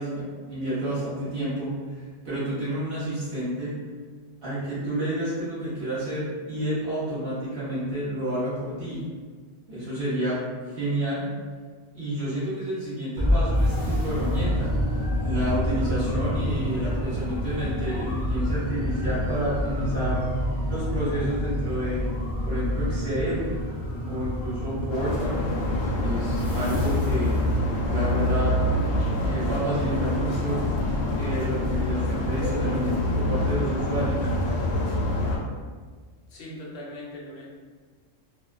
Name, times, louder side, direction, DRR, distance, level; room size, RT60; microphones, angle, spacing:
voice 1, 0.0-1.7 2.2-3.8 4.4-9.0 9.7-11.3 11.9-14.7 15.2-20.2 20.7-22.1 22.4-23.5 24.0-25.5 26.0-27.4 27.7-28.6 29.1-30.7 31.2-34.3, right 1 dB, 55° right, -10 dB, 0.9 m, -29 dB
sound 1, 13.2-27.6, equal, 30° left, 0.4 m, -28 dB
sound 2, 24.9-35.4, left 1 dB, 85° left, 1.0 m, -26 dB
voice 2, 36.3-37.5, left 1 dB, 60° left, -4 dB, 0.8 m, -40 dB
2.5 x 2.2 x 2.4 m, 1.5 s
omnidirectional pair, 1.3 m